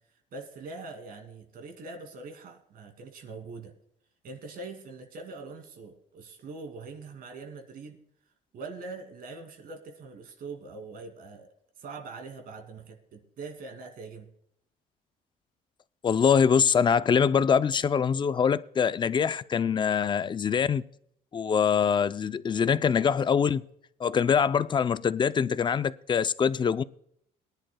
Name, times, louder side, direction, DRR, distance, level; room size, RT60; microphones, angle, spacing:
voice 1, 0.3-3.7 4.2-8.0 8.5-11.5 11.8-14.3, right 3 dB, 60° right, 2.5 m, -43 dB
voice 2, 16.0-20.8 21.3-23.6 24.0-26.8, left 7 dB, 25° left, 0.5 m, -24 dB
22.5 x 10.5 x 2.2 m
cardioid pair, 110°, 17 cm